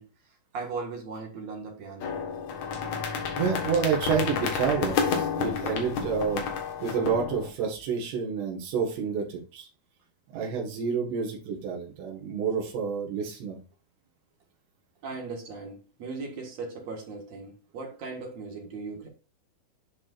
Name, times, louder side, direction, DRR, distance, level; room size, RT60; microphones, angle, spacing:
voice 1, 0.0-2.1 15.0-19.1, right 4 dB, 50° right, 2.4 m, -38 dB
sound 1, 2.0-7.5, left 6 dB, 60° left, 2.2 m, -30 dB
voice 2, 3.4-6.4 6.8-9.7 10.3-13.6, right 6 dB, 85° right, 3.8 m, -29 dB
10.5 x 5.3 x 2.5 m
omnidirectional pair, 4.8 m